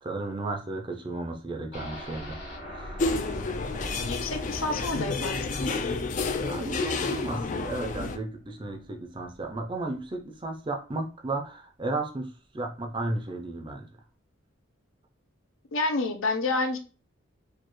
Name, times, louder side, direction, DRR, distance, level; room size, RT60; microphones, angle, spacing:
voice 1, 0.0-2.4 2.6-3.0 6.4-13.9, right 2 dB, 25° right, 3 dB, 0.5 m, -34 dB
sound 1, 1.7-9.6 9.9-10.0 10.4-10.5, equal, 55° left, 1.8 m, -42 dB
sound 2, 3.0-8.2, left 3 dB, 35° left, 0.3 m, -30 dB
voice 2, 4.0-5.6 15.7-16.8, left 2 dB, 75° left, 4 dB, 0.7 m, -29 dB
4.3 x 2.4 x 3.0 m, 0.35 s
head